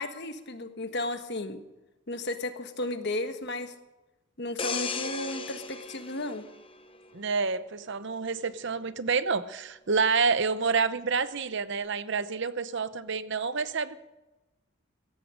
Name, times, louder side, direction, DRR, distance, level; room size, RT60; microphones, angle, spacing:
voice 1, 0.0-1.6 2.1-3.7 4.4-6.4, left 2 dB, 50° left, 8 dB, 1.4 m, -34 dB
sound 1, 4.6-7.3 7.7-7.9, left 5 dB, 25° left, 0.8 m, -36 dB
voice 2, 7.1-14.0, right 5 dB, 55° right, 13 dB, 0.8 m, -28 dB
17.0 x 14.0 x 5.1 m, 1.0 s
head